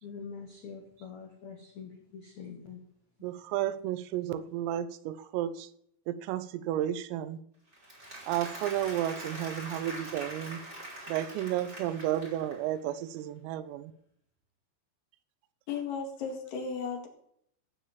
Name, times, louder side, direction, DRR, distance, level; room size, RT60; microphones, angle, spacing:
voice 1, 0.0-2.8, left 6 dB, 75° left, 3 dB, 1.7 m, -45 dB
voice 2, 3.2-5.7 6.1-7.4 8.3-10.6 11.1-13.9, right 12 dB, 90° right, 13 dB, 3.5 m, -32 dB
Applause, 7.7-12.8, right 1 dB, 15° right, 4.7 m, -43 dB
voice 3, 15.7-17.1, left 5 dB, 50° left, 2 dB, 3.2 m, -35 dB
16.0 x 7.0 x 7.5 m, 0.70 s
omnidirectional pair, 5.9 m